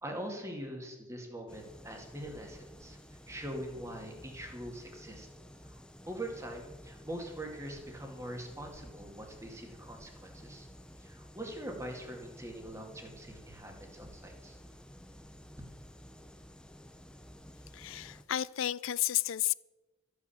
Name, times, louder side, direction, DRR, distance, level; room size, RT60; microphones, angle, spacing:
voice 1, 0.0-5.3 5.6-10.7 11.0-14.6, right 1 dB, 15° right, 2.1 m, -43 dB
sound 1, 1.5-18.2, equal, 5° left, 0.8 m, -53 dB
voice 2, 17.7-19.5, left 13 dB, 75° left, 0.4 m, -32 dB
14.0 x 8.5 x 7.1 m
head